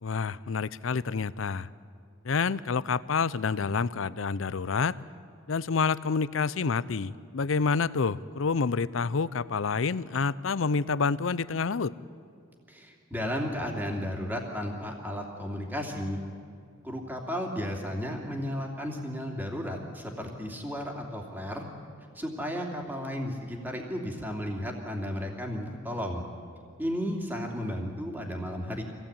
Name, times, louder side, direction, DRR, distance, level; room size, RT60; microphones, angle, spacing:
voice 1, 0.0-1.7 2.2-5.0 5.5-11.9, left 5 dB, 75° left, 17 dB, 0.6 m, -28 dB
voice 2, 12.7-16.2 16.8-21.7 22.1-26.2 26.8-28.8, equal, 10° right, 0 dB, 2.6 m, -34 dB
25.0 x 16.5 x 8.8 m, 2.3 s
head